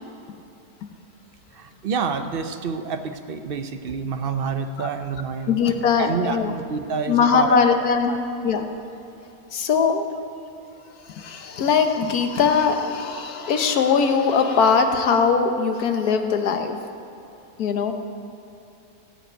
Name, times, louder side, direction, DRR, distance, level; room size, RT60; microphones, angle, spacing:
voice 1, 1.5-5.6 6.0-7.6 8.1-8.2, right 6 dB, 55° right, 8 dB, 0.7 m, -28 dB
voice 2, 5.5-6.5 7.1-8.2 8.4-8.7 9.5-10.1 11.1-16.8 17.6-17.9, left 6 dB, 85° left, 6 dB, 1.4 m, -21 dB
15.5 x 5.5 x 8.8 m, 3.0 s
omnidirectional pair, 1.6 m